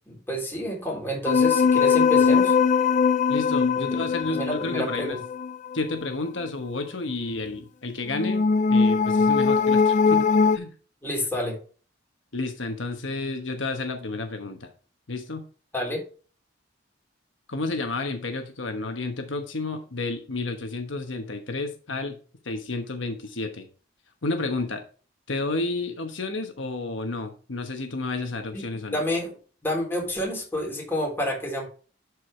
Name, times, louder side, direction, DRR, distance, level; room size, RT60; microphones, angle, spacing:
voice 1, 0.1-2.5 3.8-3.9 4.3-5.2 11.0-11.6 15.7-16.0 28.5-28.6 28.9-29.4 29.6-31.7, equal, 10° left, -1 dB, 3.4 m, -29 dB
sound 1, 1.3-5.8 8.1-10.6, left 5 dB, 40° left, 0.3 m, -21 dB
voice 2, 3.3-5.2 5.7-10.3 10.5-10.7 12.3-14.7 15.1-15.4 17.5-22.2 22.4-23.7 24.2-24.8 25.3-29.0, left 3 dB, 75° left, 6 dB, 1.1 m, -31 dB
11.5 x 4.7 x 3.3 m, 0.39 s
head